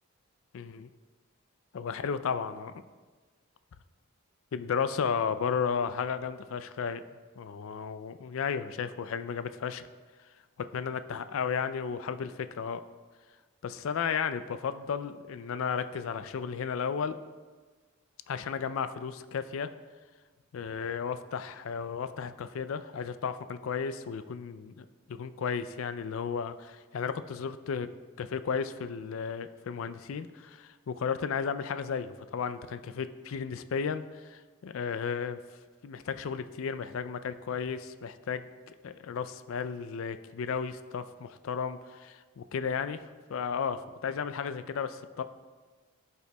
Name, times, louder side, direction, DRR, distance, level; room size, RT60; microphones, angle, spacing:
voice 1, 0.5-0.9 1.7-2.7 4.5-7.0 7.4-9.9 10.7-12.8 13.6-17.1 18.3-19.7 20.5-27.9 28.2-35.4 35.8-45.2, left 6 dB, 65° left, 11 dB, 0.4 m, -34 dB
16.0 x 5.5 x 2.2 m, 1.4 s
head